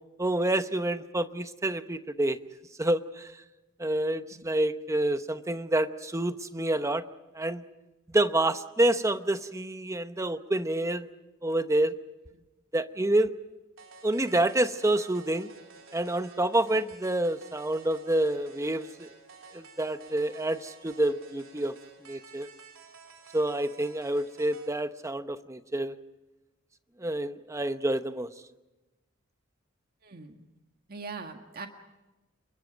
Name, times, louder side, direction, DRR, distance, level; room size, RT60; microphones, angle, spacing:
voice 1, 0.2-2.4 2.8-3.2 3.8-7.0 7.4-7.6 8.1-11.1 11.4-11.9 12.7-13.3 14.0-15.5 15.9-19.1 19.5-21.7 22.1-22.5 23.3-25.9 27.0-28.3, right 1 dB, 15° right, 10 dB, 0.9 m, -28 dB
sound 1, 13.8-24.8, right 4 dB, 80° right, 3.4 m, -52 dB
voice 2, 30.0-30.5 30.9-31.7, right 4 dB, 50° right, 4 dB, 1.8 m, -42 dB
28.5 x 23.5 x 5.2 m, 1.1 s
head